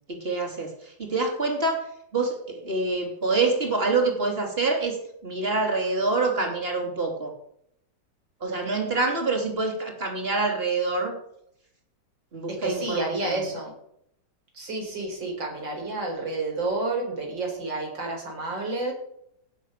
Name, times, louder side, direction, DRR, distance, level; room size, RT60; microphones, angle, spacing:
voice 1, 0.1-1.8 2.1-7.3 8.4-11.2 12.3-13.4, right 3 dB, 30° right, 2 dB, 3.2 m, -26 dB
voice 2, 12.5-13.7 14.5-18.9, right 2 dB, 90° right, 1 dB, 5.2 m, -30 dB
17.5 x 7.4 x 6.7 m, 0.73 s
omnidirectional pair, 2.0 m